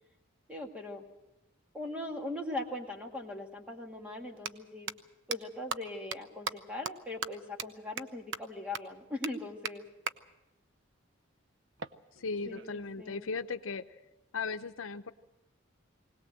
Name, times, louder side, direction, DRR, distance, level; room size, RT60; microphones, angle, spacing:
voice 1, 0.5-1.0 1.7-4.9 5.3-9.8 12.5-13.3, left 2 dB, 5° right, 2 dB, 2.0 m, -40 dB
sound 1, 3.2-3.3 4.3-4.5 4.9-5.0 5.3-5.4 5.7-5.8 6.1-6.2 6.5-6.6 6.9-7.0 7.2-7.3 7.6-7.7 8.0-8.1 8.3-8.4 8.7-8.8 9.2-9.3 9.7-9.8 10.1-10.2 11.8-12.8, right 6 dB, 65° right, 0.7 m, -37 dB
voice 2, 12.2-13.8 14.3-15.1, left 4 dB, 85° left, 9 dB, 0.8 m, -37 dB
21.0 x 18.5 x 7.7 m, 0.98 s
head